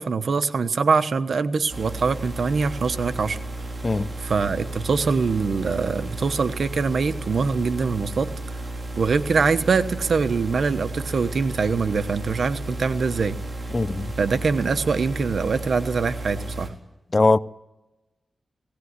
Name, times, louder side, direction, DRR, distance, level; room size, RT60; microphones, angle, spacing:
voice 1, 0.0-3.4 4.2-8.3 9.0-13.4 14.2-16.7, right 5 dB, 75° right, 1.2 m, -23 dB
sound 1, 1.7-16.7, right 1 dB, 40° right, 4.1 m, -33 dB
voice 2, 13.7-14.1 17.1-17.4, left 3 dB, 40° left, 0.7 m, -20 dB
18.5 x 18.0 x 9.8 m
cardioid pair, 70°, 0 cm